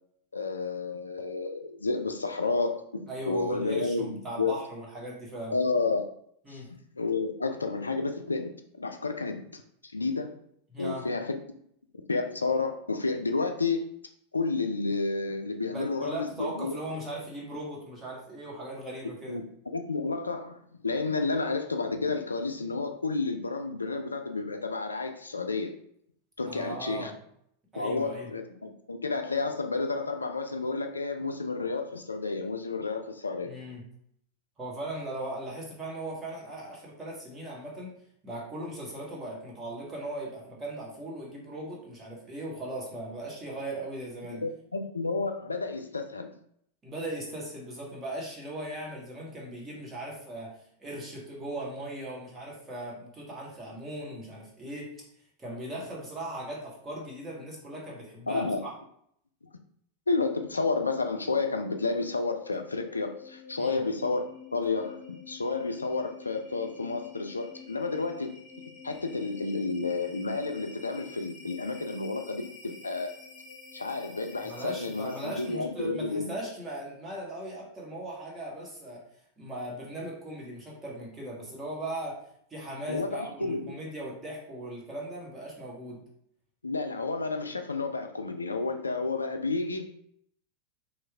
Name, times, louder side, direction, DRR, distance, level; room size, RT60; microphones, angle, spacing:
voice 1, 0.3-4.5 5.5-6.0 6.5-10.4 10.8-11.4 12.1-13.9 14.3-16.7 19.3-20.6 20.8-25.7 26.4-27.1 27.8-33.5 44.2-46.3 58.3-58.6 60.1-64.2 64.5-68.3 68.8-73.2 73.7-76.3 82.9-83.8 86.6-89.9, left 3 dB, 80° left, 6 dB, 0.3 m, -31 dB
voice 2, 3.1-5.5 6.4-6.7 10.7-11.1 15.7-19.4 26.5-27.2 27.7-28.3 33.4-33.8 34.6-37.9 38.2-44.4 46.8-54.9 55.4-58.7 63.6-63.8 74.4-79.0 79.4-82.2 82.5-86.0, right 1 dB, 20° right, -4 dB, 1.4 m, -38 dB
sound 1, 62.2-75.8, left 5 dB, 30° left, 1.0 m, -49 dB
3.1 x 2.4 x 3.4 m, 0.68 s
figure-of-eight pair, 90°, 0 cm